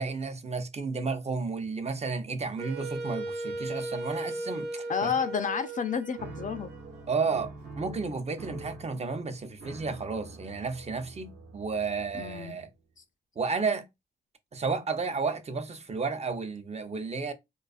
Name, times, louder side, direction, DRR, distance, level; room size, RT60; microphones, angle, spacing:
voice 1, 0.0-5.1 7.1-12.7 13.4-13.9 14.5-17.3, right 4 dB, 40° right, 0.6 m, -32 dB
Wind instrument woodwind instrument, 2.6-7.5, right 2 dB, 90° right, 0.4 m, -37 dB
voice 2, 4.9-6.7 12.1-12.6, left 7 dB, 50° left, 0.4 m, -30 dB
sound 1, 6.2-12.6, right 2 dB, 70° right, 1.0 m, -45 dB
2.3 x 2.3 x 2.4 m
cardioid pair, 50°, 17 cm